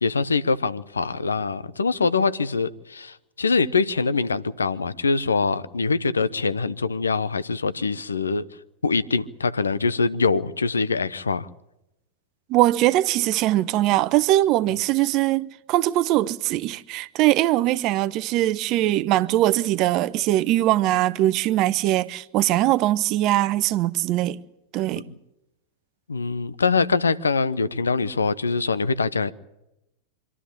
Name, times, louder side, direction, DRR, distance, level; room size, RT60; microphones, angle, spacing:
voice 1, 0.0-8.4 8.8-11.5 25.1-25.2 26.1-29.3, left 4 dB, 75° left, 0.8 m, -24 dB
voice 2, 12.5-24.4 24.7-25.1, right 15 dB, 40° right, 0.7 m, -21 dB
25.5 x 12.5 x 10.0 m
figure-of-eight pair, 90°, 0 cm